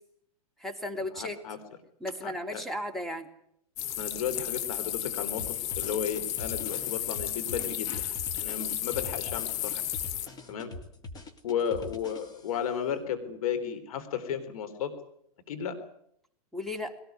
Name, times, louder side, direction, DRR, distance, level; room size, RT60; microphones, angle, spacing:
voice 1, 0.6-1.4 2.0-3.3 16.5-17.0, left 1 dB, ahead, 3 dB, 2.9 m, -35 dB
voice 2, 1.2-1.6 2.2-2.6 4.0-8.0 8.3-9.8 10.5-10.7 11.4-14.9 15.5-15.8, left 8 dB, 65° left, 9 dB, 3.8 m, -34 dB
sound 1, 3.8-10.3, left 12 dB, 35° left, 1.4 m, -33 dB
sound 2, 5.4-12.7, left 2 dB, 20° left, 3.2 m, -44 dB
21.5 x 18.5 x 9.6 m, 0.71 s
hypercardioid pair, 125°, 19 cm